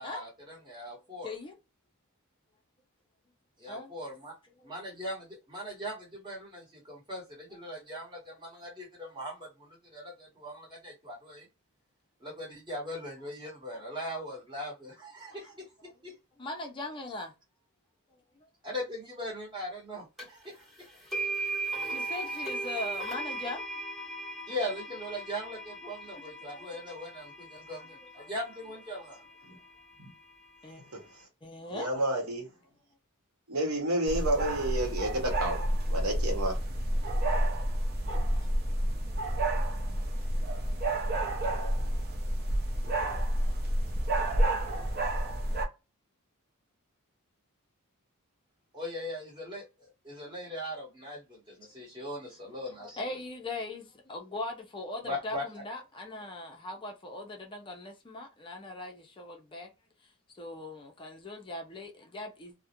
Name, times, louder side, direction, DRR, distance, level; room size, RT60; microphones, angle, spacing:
voice 1, 0.0-1.3 3.6-4.3 4.6-11.5 12.2-15.5 16.0-16.1 18.6-20.7 24.5-29.2 48.7-53.0 55.0-55.4, equal, 20° right, 1.2 m, -40 dB
voice 2, 1.2-1.6 3.7-3.9 4.6-4.7 13.7-13.8 15.3-15.4 16.4-17.3 21.8-23.6 26.1-26.2 26.5-26.9 27.7-27.9 28.2-28.3 30.6-30.8 31.4-31.9 38.0-38.5 51.6-51.7 52.8-59.7 60.0-60.1 60.4-62.5, left 2 dB, 20° left, 0.5 m, -40 dB
sound 1, 20.2-20.3 21.1-29.1, right 2 dB, ahead, 1.1 m, -37 dB
voice 3, 31.7-32.5 33.5-35.6 35.9-36.6, right 1 dB, 70° right, 0.9 m, -30 dB
sound 2, 34.1-45.7, right 1 dB, 45° right, 0.6 m, -29 dB
2.3 x 2.1 x 2.8 m
head